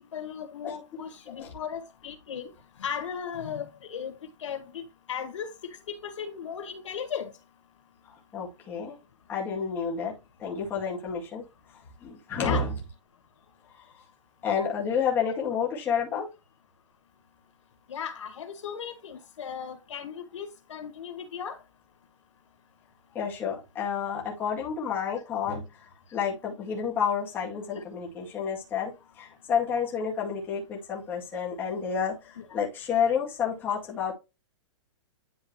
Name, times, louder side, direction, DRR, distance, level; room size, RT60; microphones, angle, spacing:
voice 1, 0.1-2.5 2.8-4.1 4.4-4.8 5.1-5.5 5.9-7.3 12.4-12.6 17.9-21.6 32.4-32.5, left 7 dB, 80° left, 2.0 m, -36 dB
voice 2, 8.1-9.0 9.3-10.1 10.4-11.4 12.0-12.7 14.4-16.3 23.1-25.6 26.1-28.9 29.2-34.1, left 6 dB, 15° left, 2.0 m, -30 dB
10.5 x 3.7 x 3.2 m
hypercardioid pair, 175°, 16 cm